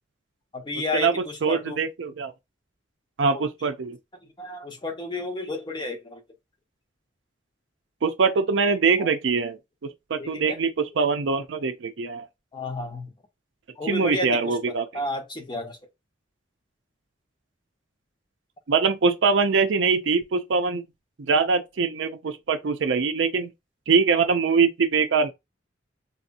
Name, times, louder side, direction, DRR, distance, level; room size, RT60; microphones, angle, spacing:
voice 1, 0.5-1.8 3.3-3.5 4.2-6.2 9.0-9.1 10.2-10.6 12.5-13.1 13.8-15.8, left 2 dB, 25° left, 0.8 m, -32 dB
voice 2, 1.4-2.3 3.2-4.0 8.0-12.3 13.9-14.8 18.7-20.8 21.2-23.5 23.9-25.3, right 5 dB, 75° right, 0.5 m, -23 dB
4.0 x 2.7 x 2.5 m
head